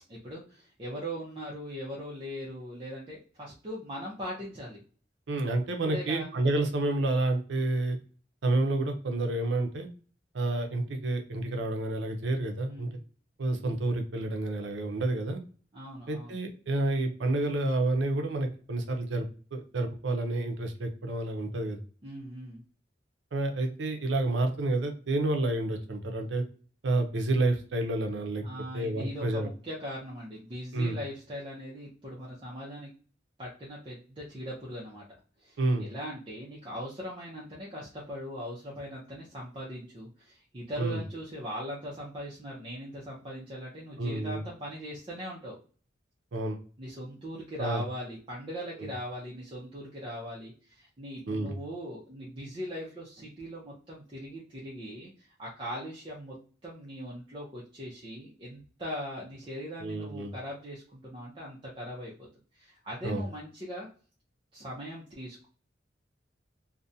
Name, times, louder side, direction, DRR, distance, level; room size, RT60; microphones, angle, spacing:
voice 1, 0.1-4.8 5.9-6.3 12.7-13.0 13.5-13.7 15.7-16.4 22.0-22.6 28.4-32.9 33.4-35.0 35.4-45.6 46.8-56.4 56.6-62.1 62.5-63.9 64.5-65.5, equal, 30° right, -6 dB, 0.6 m, -40 dB
voice 2, 5.3-8.0 8.4-9.9 10.3-12.9 13.4-15.4 16.1-19.3 19.5-21.8 23.3-26.4 26.8-28.4 28.7-29.5 30.7-31.0 35.6-35.9 40.8-41.0 44.0-44.4 46.3-46.6 47.6-47.8 48.8-48.9 51.3-51.5 59.8-60.3 63.0-63.2, right 2 dB, 75° right, 4 dB, 0.5 m, -29 dB
2.4 x 2.1 x 2.6 m, 0.40 s
head